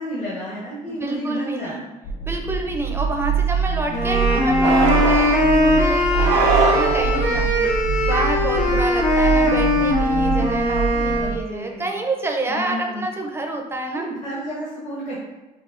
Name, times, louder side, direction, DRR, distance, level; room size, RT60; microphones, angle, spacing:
voice 1, 0.0-1.8 2.3-2.4 11.1-12.0 12.5-13.1 13.9-15.2, equal, 45° left, -7 dB, 1.1 m, -31 dB
voice 2, 0.9-1.8 2.2-7.7 8.0-14.1, right 2 dB, 15° right, 2 dB, 0.5 m, -28 dB
sound 1, 2.0-11.4, right 4 dB, 65° left, 0.7 m, -24 dB
sound 2, 3.9-11.4, left 1 dB, 90° left, 1.3 m, -20 dB
sound 3, 4.6-5.5 6.1-7.3, right 6 dB, 80° right, 0.5 m, -22 dB
5.9 x 2.3 x 2.5 m, 1.1 s
cardioid pair, 110°, 17 cm